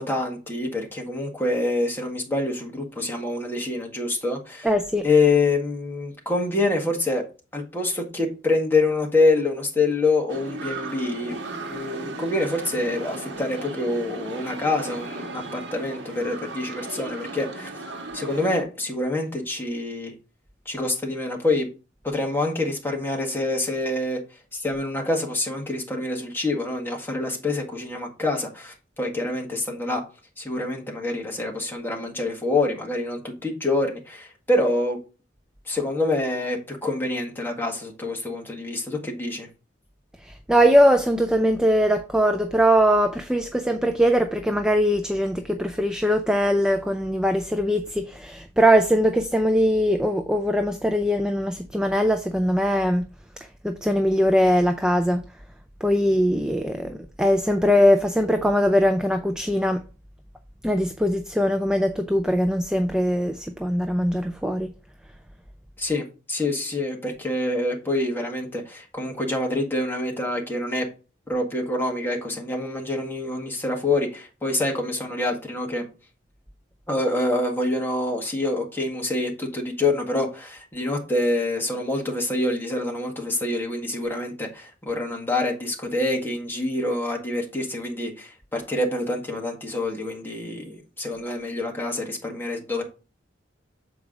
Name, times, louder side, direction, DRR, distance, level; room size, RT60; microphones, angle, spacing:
voice 1, 0.0-4.7 5.0-7.2 7.5-11.4 11.7-17.7 18.1-20.1 20.6-21.7 22.0-24.2 24.5-30.0 30.4-35.0 35.7-39.5 65.8-70.9 71.3-75.9 76.9-92.8, left 2 dB, 10° left, 1.7 m, -26 dB
voice 2, 4.6-5.1 40.3-53.0 53.6-55.2 55.8-59.8 60.6-64.7, equal, 5° right, 0.4 m, -21 dB
sound 1, 10.3-18.6, right 2 dB, 65° right, 1.4 m, -36 dB
7.4 x 4.7 x 3.7 m
head